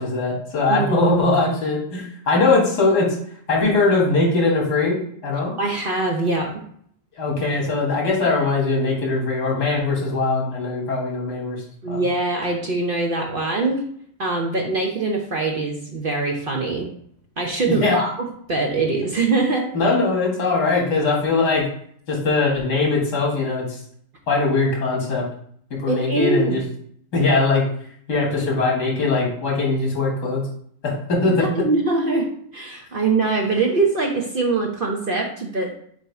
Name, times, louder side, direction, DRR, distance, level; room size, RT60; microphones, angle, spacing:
voice 1, 0.0-3.1 3.5-5.5 7.2-11.6 11.9-12.0 17.7-18.0 19.7-21.6 22.1-23.6 24.3-25.2 25.8-26.6 27.1-27.6 28.1-30.4 30.8-31.4, left 3 dB, 80° left, -2 dB, 2.4 m, -21 dB
voice 2, 0.7-1.1 5.6-6.6 11.8-13.8 14.2-16.9 17.4-18.1 18.5-19.7 25.9-26.6 31.4-35.7, right 3 dB, 45° right, 1 dB, 0.7 m, -23 dB
7.3 x 2.7 x 4.7 m, 0.64 s
omnidirectional pair, 1.7 m